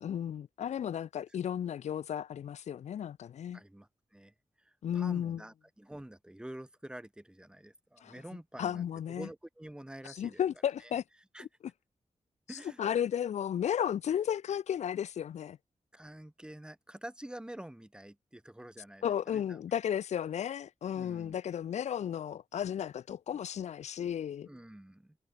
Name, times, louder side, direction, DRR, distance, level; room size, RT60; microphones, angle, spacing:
voice 1, 0.0-3.6 4.8-5.4 8.0-8.1 8.6-9.3 10.0-11.0 12.5-15.6 19.0-24.5, left 9 dB, 90° left, 0.6 m, -34 dB
voice 2, 3.5-10.4 10.8-10.9 11.3-11.5 12.5-12.8 15.9-19.6 20.9-21.4 24.5-25.2, right 1 dB, 5° right, 2.8 m, -48 dB
wide cardioid pair, 130°, 11 cm